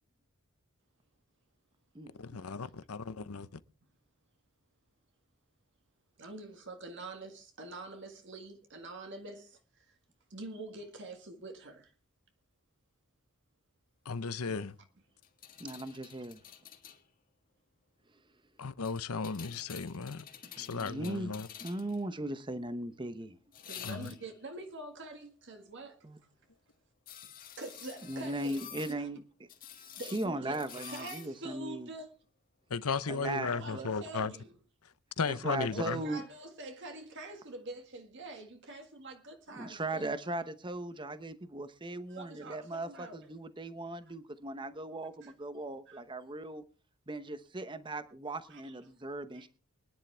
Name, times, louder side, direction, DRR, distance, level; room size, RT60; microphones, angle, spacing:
voice 1, 2.2-3.6 14.0-14.8 18.6-20.2 20.6-21.5 23.8-24.1 32.7-34.3 35.2-36.0, left 5 dB, 80° left, 0.9 m, -35 dB
voice 2, 6.2-10.0 10.3-11.9 23.7-26.1 27.6-29.1 30.0-32.1 33.2-34.5 35.7-40.1 42.1-43.3 45.2-45.3 45.9-46.0 48.5-48.8 49.3-49.5, right 2 dB, 55° right, 1.8 m, -46 dB
sound 1, 15.2-17.0 18.8-22.0 23.5-24.4 27.1-29.0 29.5-31.3 32.9-33.0, left 9 dB, 40° left, 1.6 m, -49 dB
voice 3, 15.6-16.4 20.6-21.3 21.6-23.4 26.0-26.2 28.1-29.2 30.1-31.9 33.1-33.9 35.2-36.2 39.5-46.6 47.1-49.5, right 2 dB, 20° right, 0.9 m, -38 dB
23.5 x 10.5 x 3.4 m
head